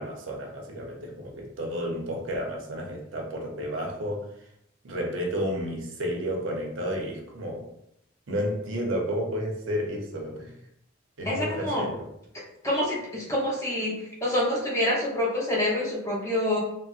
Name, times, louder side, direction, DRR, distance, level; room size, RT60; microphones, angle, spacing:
voice 1, 0.0-4.3 4.8-7.7 8.3-10.5 11.2-12.1, equal, 85° right, 1 dB, 0.7 m, -31 dB
voice 2, 11.2-11.8 12.6-14.0 14.2-16.6, left 1 dB, 15° left, -5 dB, 0.8 m, -26 dB
3.9 x 2.1 x 2.4 m, 0.75 s
head